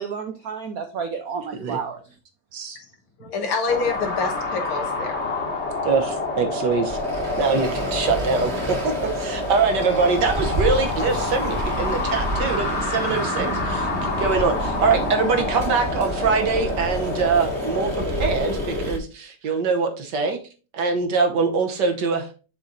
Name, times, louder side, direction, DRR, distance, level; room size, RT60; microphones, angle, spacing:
voice 1, 0.0-2.0 3.2-3.3, right 6 dB, 90° right, 0.8 m, -31 dB
voice 2, 3.2-5.2, left 4 dB, 75° left, 2.1 m, -26 dB
sound 1, 3.7-18.9, left 3 dB, 35° left, 1.4 m, -28 dB
voice 3, 5.8-7.0 7.4-8.5 9.1-17.9 18.2-20.4 20.7-22.2, right 4 dB, 60° right, 1.4 m, -23 dB
Traffic noise roadway noise, 6.9-19.0, right 2 dB, 35° right, 1.4 m, -30 dB
7.3 x 4.0 x 3.9 m
omnidirectional pair, 2.4 m